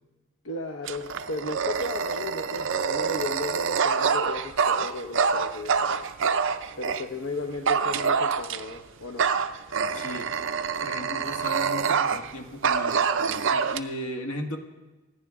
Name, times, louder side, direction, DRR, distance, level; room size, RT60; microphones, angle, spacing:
voice 1, 0.4-6.0 6.8-9.3, left 2 dB, 60° left, 3 dB, 0.8 m, -35 dB
Dog, 0.8-7.1 7.7-8.8 9.2-12.3 12.6-13.8, right 6 dB, 55° right, 0.5 m, -26 dB
voice 2, 9.9-10.3 10.8-13.0 13.5-14.6, left 1 dB, 80° left, 3 dB, 1.8 m, -36 dB
26.5 x 10.5 x 3.7 m, 1.1 s
head